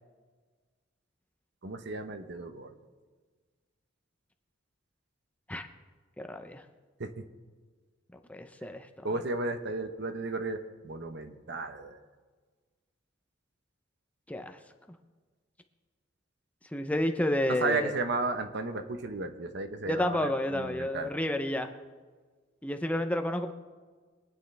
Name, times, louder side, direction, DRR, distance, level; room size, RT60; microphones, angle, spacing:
voice 1, 1.6-2.8 7.0-7.3 9.0-12.0 17.5-21.1, right 3 dB, 60° right, 8 dB, 1.0 m, -34 dB
voice 2, 6.2-6.6 8.3-9.1 14.3-14.6 16.7-17.9 19.9-21.7 22.6-23.5, left 1 dB, 5° left, 6 dB, 0.6 m, -30 dB
23.5 x 9.3 x 3.4 m, 1.4 s
head